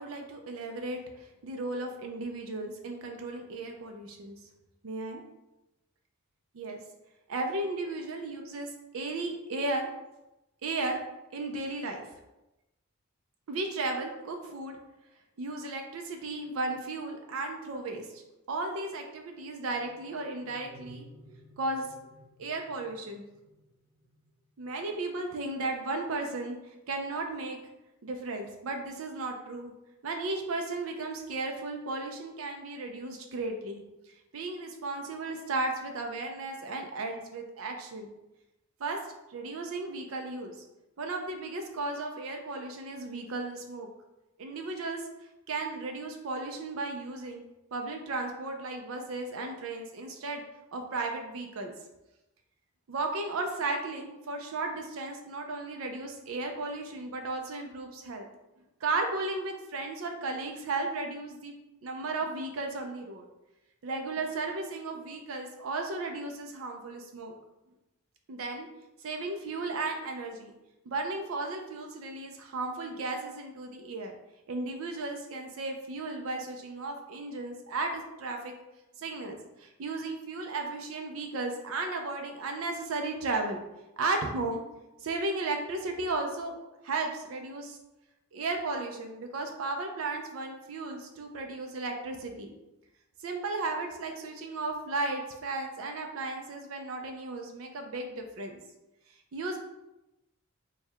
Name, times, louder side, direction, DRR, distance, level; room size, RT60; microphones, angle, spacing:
voice 1, 0.0-4.4 4.8-5.2 6.5-6.8 7.3-9.9 10.6-11.0 11.3-12.0 13.5-14.8 15.4-18.2 18.5-21.1 21.6-21.9 22.4-23.2 24.6-27.6 28.0-29.7 30.0-38.1 38.8-39.0 39.3-40.6 41.0-43.9 44.4-45.1 45.5-47.4 47.7-50.4 50.7-51.7 52.9-58.3 58.8-61.5 61.8-63.3 63.8-67.3 68.3-68.7 69.0-70.5 70.9-74.1 74.5-78.5 79.0-83.6 84.0-84.6 85.0-86.6 86.8-87.8 88.3-92.5 93.2-98.6 99.3-99.6, right 2 dB, 80° right, 3 dB, 0.5 m, -35 dB
sound 1, 19.6-24.9, equal, 30° right, 1.3 m, -56 dB
3.4 x 2.3 x 4.4 m, 0.96 s
head